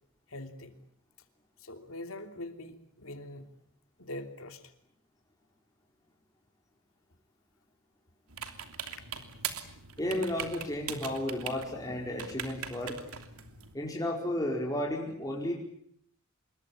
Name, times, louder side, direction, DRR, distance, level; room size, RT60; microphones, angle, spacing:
voice 1, 0.3-0.8 1.6-3.5 4.0-4.6 8.8-8.9, left 1 dB, 70° left, 7 dB, 3.1 m, -43 dB
sound 1, 8.3-13.7, right 8 dB, 90° right, 3.0 m, -41 dB
voice 2, 10.0-13.0 13.7-15.5, left 1 dB, 15° left, -2 dB, 5.0 m, -33 dB
26.5 x 22.5 x 8.7 m, 0.67 s
head